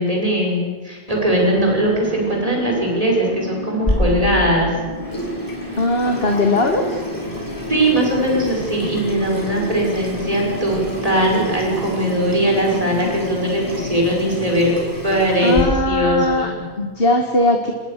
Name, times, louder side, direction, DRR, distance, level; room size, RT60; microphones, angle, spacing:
voice 1, 0.0-4.7 7.7-14.8 15.0-16.6, right 1 dB, 35° right, -2 dB, 5.9 m, -20 dB
sound 1, 1.1-14.8, left 1 dB, 35° left, 3.5 m, -32 dB
Water tap faucet / Sink (filling or washing), 3.9-15.6, equal, 20° left, 5.3 m, -29 dB
voice 2, 5.8-7.0 15.4-16.5 16.8-17.7, left 1 dB, 65° left, 4 dB, 2.0 m, -19 dB
27.5 x 20.5 x 6.8 m, 1.5 s
omnidirectional pair, 1.0 m